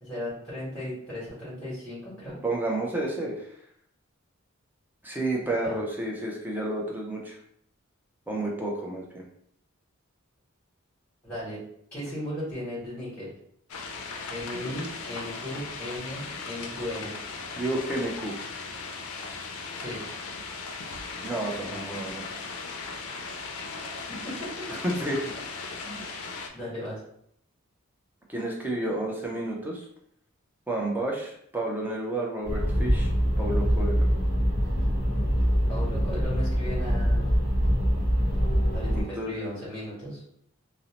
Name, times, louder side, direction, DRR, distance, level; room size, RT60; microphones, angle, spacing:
voice 1, 0.0-2.4 5.6-5.8 11.2-11.6 11.9-13.3 14.3-17.1 19.8-20.0 21.6-22.0 24.2-24.3 25.8-26.0 26.5-27.0 35.7-37.3 38.7-40.4, left 1 dB, 10° left, -11 dB, 1.2 m, -36 dB
voice 2, 2.4-3.5 5.0-7.4 8.3-9.2 17.6-18.3 21.2-22.2 24.7-25.2 28.3-29.9 30.7-33.1 33.4-34.0 38.9-39.4, right 1 dB, 10° right, -2 dB, 0.5 m, -30 dB
sound 1, 13.7-26.5, left 4 dB, 80° left, 0.4 m, -38 dB
sound 2, 32.4-39.0, equal, 50° right, 0.9 m, -24 dB
2.6 x 2.0 x 2.9 m, 0.68 s
head